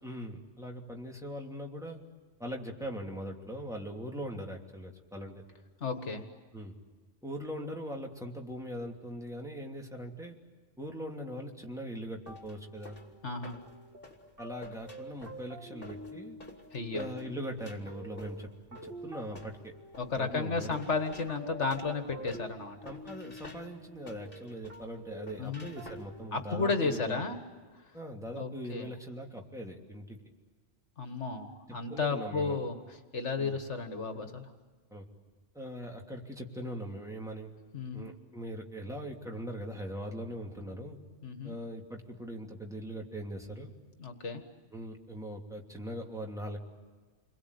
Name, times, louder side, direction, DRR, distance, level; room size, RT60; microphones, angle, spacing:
voice 1, 0.0-2.0 2.4-5.4 6.5-6.8 7.2-10.4 10.8-13.0 14.4-16.4 16.9-19.7 20.2-20.8 22.8-27.2 27.9-30.2 31.9-32.6 33.4-33.6 34.9-35.1 35.5-37.5 37.9-41.0 41.4-43.7 44.7-46.6, equal, 5° right, 0 dB, 2.9 m, -41 dB
voice 2, 5.8-6.2 13.2-13.6 16.7-17.0 20.0-22.8 25.4-25.7 26.3-27.4 28.3-28.9 31.0-32.8 33.1-34.5 37.7-38.0 41.2-41.6 44.0-44.4, left 4 dB, 70° left, 7 dB, 1.9 m, -33 dB
sound 1, 12.3-26.5, left 2 dB, 50° left, 3.0 m, -53 dB
sound 2, 12.3-27.6, right 1 dB, 50° right, 2.5 m, -49 dB
29.0 x 22.5 x 8.4 m, 1.4 s
omnidirectional pair, 1.2 m